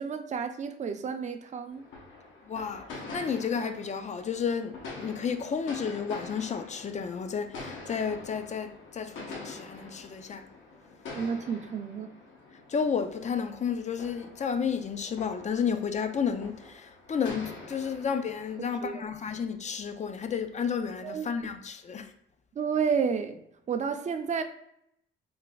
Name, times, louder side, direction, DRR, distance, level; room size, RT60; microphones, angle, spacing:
voice 1, 0.0-1.9 11.1-12.1 18.8-19.0 21.0-21.3 22.6-24.4, right 6 dB, 35° right, 0.5 m, -31 dB
sound 1, 1.7-18.6, left 3 dB, 75° left, 0.9 m, -45 dB
voice 2, 2.5-10.5 12.7-22.1, left 6 dB, 35° left, 0.4 m, -32 dB
3.3 x 2.2 x 3.9 m
cardioid pair, 90°, 20 cm